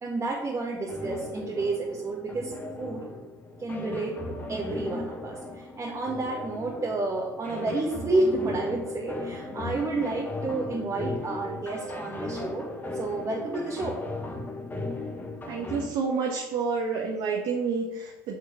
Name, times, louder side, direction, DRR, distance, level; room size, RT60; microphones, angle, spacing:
voice 1, 0.0-2.5 2.8-3.0 3.6-14.0, right 2 dB, 30° right, -3 dB, 1.8 m, -30 dB
sound 1, 0.9-15.9, left 2 dB, 20° left, 1.5 m, -37 dB
voice 2, 15.5-18.3, right 5 dB, 55° right, -1 dB, 1.4 m, -29 dB
6.5 x 5.8 x 5.9 m, 0.98 s
hypercardioid pair, 65°, 10 cm